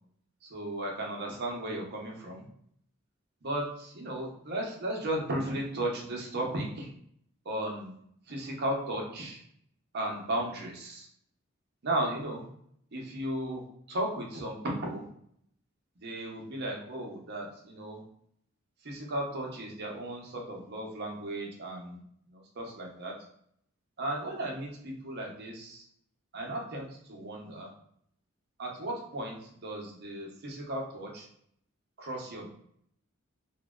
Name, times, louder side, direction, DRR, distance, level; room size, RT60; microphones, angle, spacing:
voice 1, 0.4-2.5 3.4-6.9 7.5-8.0 8.3-9.4 9.9-11.1 11.8-12.4 12.9-13.6 13.9-15.0 16.0-18.0 18.8-22.0 22.3-23.1 24.0-25.8 26.3-27.7 28.6-31.3 32.0-32.5, right 1 dB, 55° right, -1 dB, 0.7 m, -35 dB
2.6 x 2.1 x 2.2 m, 0.68 s
head